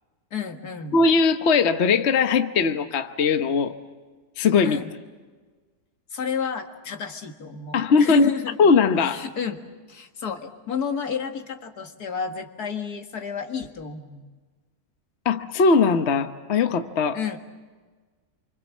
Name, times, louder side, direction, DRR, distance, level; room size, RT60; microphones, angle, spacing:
voice 1, 0.3-1.0 4.6-4.9 6.1-8.6 9.0-14.2 17.1-17.4, left 6 dB, 80° left, 5 dB, 2.3 m, -31 dB
voice 2, 0.9-3.8 4.4-4.8 7.7-8.3 8.6-9.2 15.2-17.2, left 4 dB, 50° left, 8 dB, 1.2 m, -20 dB
28.5 x 25.0 x 7.4 m, 1.4 s
omnidirectional pair, 1.6 m